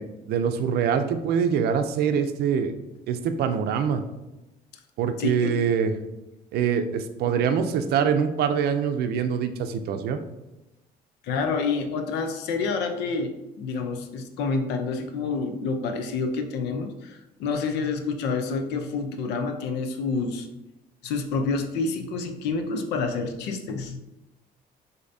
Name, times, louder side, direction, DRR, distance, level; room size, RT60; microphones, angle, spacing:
voice 1, 0.0-2.7 3.1-4.0 5.0-5.9 6.5-10.2, right 7 dB, 70° right, 8 dB, 0.5 m, -24 dB
voice 2, 5.2-5.6 11.2-20.5 21.0-24.0, left 4 dB, 85° left, 6 dB, 0.6 m, -28 dB
6.5 x 2.8 x 2.7 m, 0.98 s
cardioid pair, 110°, 17 cm